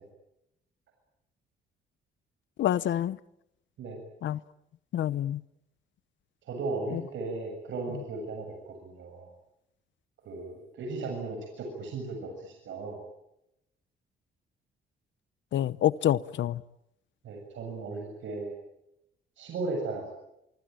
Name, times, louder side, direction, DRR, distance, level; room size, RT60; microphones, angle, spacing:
voice 1, 2.6-3.2 4.2-4.4 4.9-5.4 6.9-7.0 15.5-16.6, left 11 dB, 70° left, 0.9 m, -27 dB
voice 2, 6.5-9.3 10.3-13.0 17.2-18.5 19.4-20.1, right 3 dB, 75° right, 7.4 m, -36 dB
25.0 x 24.5 x 9.1 m
cardioid pair, 90°, 20 cm